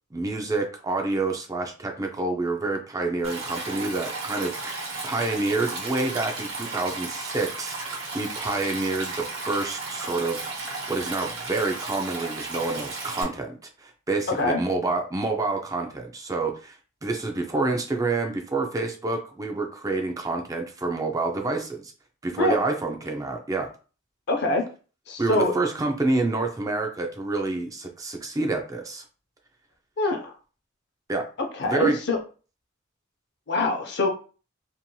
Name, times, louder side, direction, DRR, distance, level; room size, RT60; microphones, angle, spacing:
voice 1, 0.1-7.8 8.1-21.9 22.2-23.7 25.2-29.0 31.1-31.3 31.6-32.0, right 3 dB, 15° right, 3 dB, 0.3 m, -28 dB
Stream, 3.2-13.2, right 3 dB, 75° right, 1.0 m, -34 dB
voice 2, 24.3-24.7 25.1-25.5 30.0-30.3 31.4-32.2 33.5-34.1, left 2 dB, 55° left, 3 dB, 0.6 m, -24 dB
2.9 x 2.7 x 2.2 m, 0.37 s
head